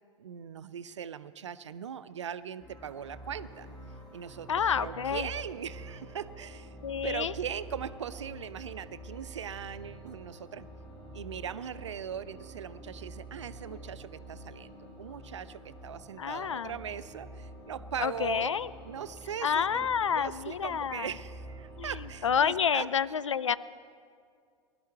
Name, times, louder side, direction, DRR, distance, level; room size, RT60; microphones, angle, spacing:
voice 1, 0.2-3.7 4.1-4.5 4.7-6.8 7.0-10.7 11.1-18.5 18.8-22.9, right 8 dB, 75° right, 15 dB, 0.5 m, -40 dB
sound 1, 2.6-22.4, right 1 dB, 30° left, 3.8 m, -47 dB
voice 2, 4.5-5.3 6.8-7.3 16.2-16.7 18.0-18.7 19.4-21.1 21.8-21.9 22.2-23.6, left 7 dB, 80° left, 17 dB, 0.4 m, -29 dB
20.5 x 12.0 x 4.6 m, 2.2 s
figure-of-eight pair, 80°, 16 cm